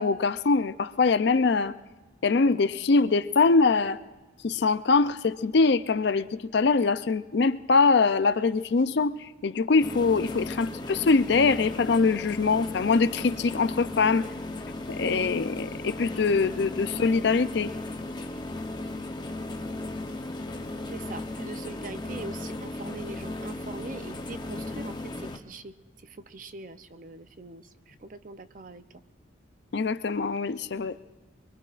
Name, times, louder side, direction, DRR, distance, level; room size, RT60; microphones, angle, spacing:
voice 1, 0.0-1.7 2.2-4.0 4.4-9.2 9.4-14.3 15.0-17.7 29.7-30.9, left 4 dB, 60° left, 14 dB, 0.4 m, -23 dB
sound 1, 9.8-25.4, left 2 dB, 20° left, 0.7 m, -36 dB
voice 2, 20.8-25.7 26.0-28.8, right 3 dB, 40° right, 11 dB, 0.5 m, -42 dB
24.0 x 23.0 x 2.5 m, 1.2 s
head